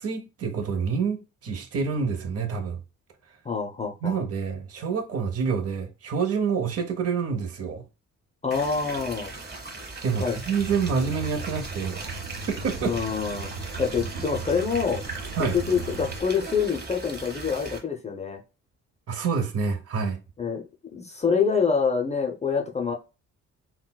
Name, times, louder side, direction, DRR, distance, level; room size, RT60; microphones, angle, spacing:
voice 1, 0.0-2.8 4.0-7.8 10.0-12.2 12.5-12.9 15.4-15.6 19.1-20.2, right 5 dB, 50° right, 0.8 m, -27 dB
voice 2, 3.4-4.2 8.4-9.3 10.2-10.4 12.8-13.5 13.8-15.0 15.5-18.4 20.4-20.6 20.9-22.9, left 6 dB, 20° left, 0.5 m, -26 dB
sound 1, 8.5-17.8, right 3 dB, 35° right, 1.1 m, -38 dB
sound 2, 10.6-16.2, right 5 dB, 90° right, 0.7 m, -37 dB
3.7 x 2.2 x 2.2 m
cardioid pair, 90°, 30 cm